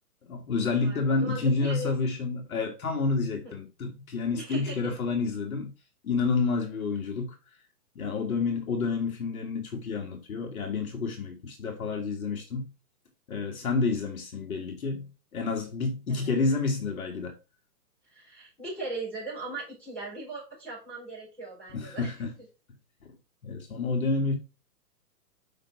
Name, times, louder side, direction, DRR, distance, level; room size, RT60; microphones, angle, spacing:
voice 1, 0.3-5.7 6.0-7.4 8.0-12.7 13.3-17.3 21.7-22.3 23.0-23.1 23.4-24.4, left 4 dB, 60° left, 1.9 m, -29 dB
voice 2, 0.8-1.9 3.4-3.5 4.3-4.9 16.1-16.6 18.1-22.3, right 2 dB, 5° left, 4.2 m, -39 dB
6.6 x 5.5 x 4.7 m
hypercardioid pair, 170°, 47 cm